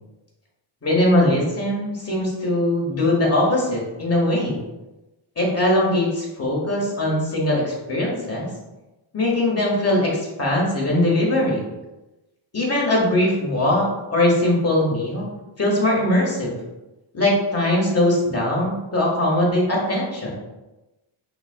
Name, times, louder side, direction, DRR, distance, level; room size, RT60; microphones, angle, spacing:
voice 1, 0.8-4.6 5.4-8.5 9.1-11.6 12.5-15.3 15.6-16.6 17.1-20.3, left 1 dB, 30° left, -3 dB, 1.5 m, -21 dB
5.8 x 2.4 x 2.2 m, 1.0 s
cardioid pair, 75°, 48 cm